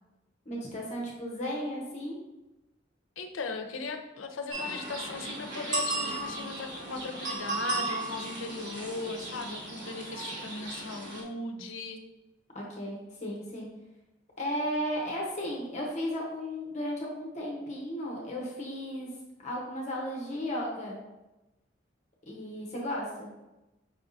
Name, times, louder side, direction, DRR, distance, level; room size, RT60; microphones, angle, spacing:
voice 1, 0.4-2.2 12.5-13.7 14.4-19.1 19.4-21.0 22.3-23.3, equal, 35° left, -3 dB, 0.9 m, -35 dB
voice 2, 3.2-12.0, left 3 dB, 90° left, 6 dB, 0.5 m, -38 dB
sound 1, 4.5-11.2, right 2 dB, 70° right, 1.2 m, -35 dB
5.5 x 3.5 x 2.6 m, 1.0 s
head